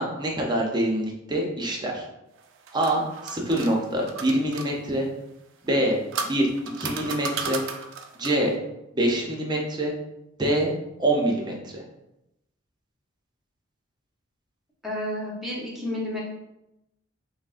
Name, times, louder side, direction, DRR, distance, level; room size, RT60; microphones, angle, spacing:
voice 1, 0.0-2.0 2.7-5.1 5.6-6.5 6.8-7.6 8.1-8.6 8.9-9.9 10.4-10.7 11.0-11.8, right 1 dB, 20° right, -1 dB, 0.6 m, -25 dB
sound 1, 2.4-4.7 5.7-8.5, right 5 dB, 65° right, 0.4 m, -35 dB
voice 2, 14.8-16.2, left 1 dB, ahead, -5 dB, 0.9 m, -31 dB
5.7 x 2.1 x 2.5 m, 0.89 s
head